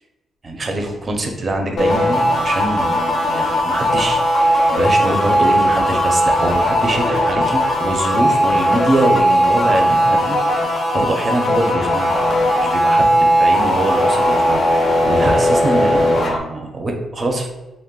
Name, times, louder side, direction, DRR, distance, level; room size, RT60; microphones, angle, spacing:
voice 1, 0.4-10.4 10.9-12.2 12.6-17.5, right 1 dB, 30° right, 3 dB, 0.5 m, -23 dB
sound 1, 1.8-16.4, equal, 50° left, 0.5 m, -17 dB
2.3 x 2.1 x 3.5 m, 1.1 s
cardioid pair, 110°, 0 cm